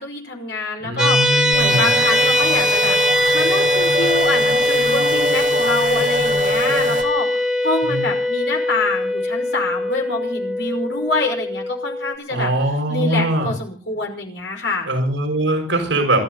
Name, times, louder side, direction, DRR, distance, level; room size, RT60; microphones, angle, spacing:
voice 1, 0.0-14.9, left 3 dB, 65° left, 1 dB, 5.6 m, -26 dB
voice 2, 0.8-1.8 7.8-8.0 12.3-13.5 14.9-16.2, right 1 dB, 75° right, 3 dB, 6.3 m, -21 dB
sound 1, 1.0-12.2, left 1 dB, 5° right, 1.8 m, -20 dB
sound 2, 1.5-7.1, right 2 dB, 45° right, 2.9 m, -26 dB
28.0 x 12.5 x 4.1 m, 0.38 s
head